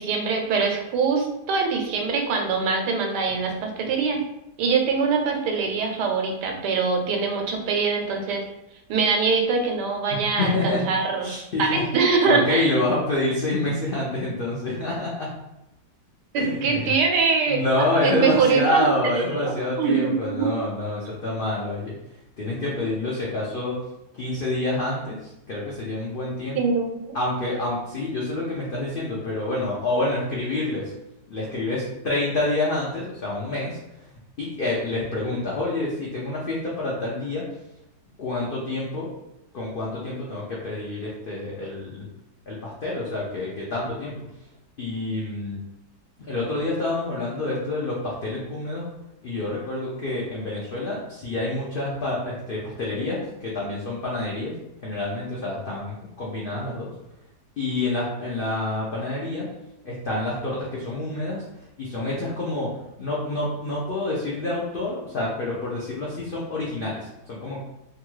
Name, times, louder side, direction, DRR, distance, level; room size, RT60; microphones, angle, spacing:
voice 1, 0.0-4.2 4.6-8.4 8.9-11.3 11.6-12.7 16.3-20.5 26.5-27.2, right 5 dB, 90° right, 3 dB, 1.2 m, -23 dB
voice 2, 10.4-10.9 11.2-11.9 12.2-15.3 16.4-16.9 17.5-21.9 22.4-23.8 24.1-26.6 27.1-30.9 31.3-33.8 34.4-37.4 38.2-39.1 39.5-42.0 42.5-44.2 44.8-45.6 46.2-48.9 49.2-54.5 54.8-56.9 57.6-59.5 59.8-61.4 61.8-62.7 63.0-67.6, left 2 dB, 80° left, -5 dB, 0.4 m, -27 dB
2.9 x 2.3 x 3.0 m, 0.87 s
omnidirectional pair, 1.7 m